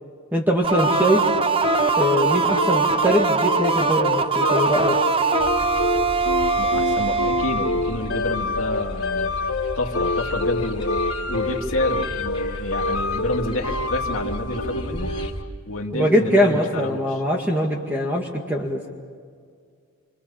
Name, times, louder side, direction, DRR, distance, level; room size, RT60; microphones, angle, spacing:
voice 1, 0.3-1.3 2.0-5.0 15.9-18.8, equal, 10° right, -1 dB, 2.1 m, -22 dB
sound 1, 0.6-8.2, right 5 dB, 25° right, 0.8 m, -22 dB
sound 2, 0.7-15.5, left 3 dB, 90° left, 1.2 m, -27 dB
sound 3, 5.4-15.4, equal, 25° left, 3.1 m, -35 dB
voice 2, 6.6-9.4 9.8-15.2 15.7-17.2, left 2 dB, 75° left, 1 dB, 2.2 m, -29 dB
28.5 x 26.0 x 7.1 m, 2.1 s
head